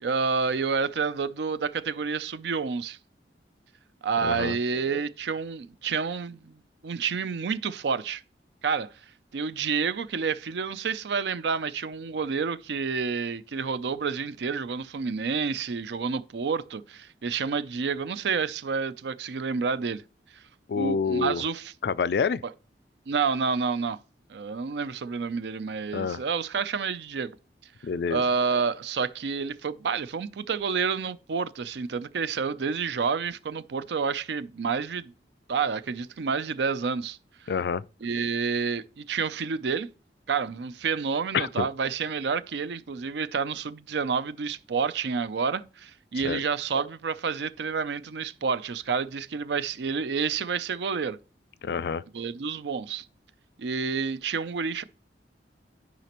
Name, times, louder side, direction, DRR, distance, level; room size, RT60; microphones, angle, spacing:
voice 1, 0.0-3.0 4.0-8.2 8.6-8.9 9.3-20.0 20.7-21.7 23.1-24.0 24.3-27.3 28.1-35.1 35.5-37.2 38.0-39.9 40.3-51.2 52.1-53.1 53.6-54.8, right 5 dB, 70° right, 0.5 m, -29 dB
voice 2, 4.2-4.6 20.7-21.4 21.8-22.4 25.9-26.2 27.8-28.2 37.5-37.8 41.3-41.7 46.2-46.4 51.6-52.0, left 5 dB, 60° left, 0.3 m, -27 dB
12.0 x 5.0 x 3.0 m
head